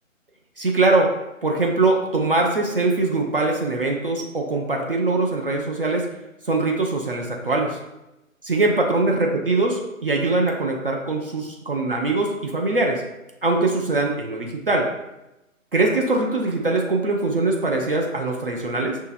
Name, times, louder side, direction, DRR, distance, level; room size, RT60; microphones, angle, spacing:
voice 1, 0.6-1.1 1.4-6.1 6.4-7.8 8.4-13.0 13.4-14.9 15.7-19.0, right 2 dB, 45° right, 1 dB, 0.5 m, -22 dB
5.6 x 2.8 x 2.4 m, 0.95 s
figure-of-eight pair, 140°, 41 cm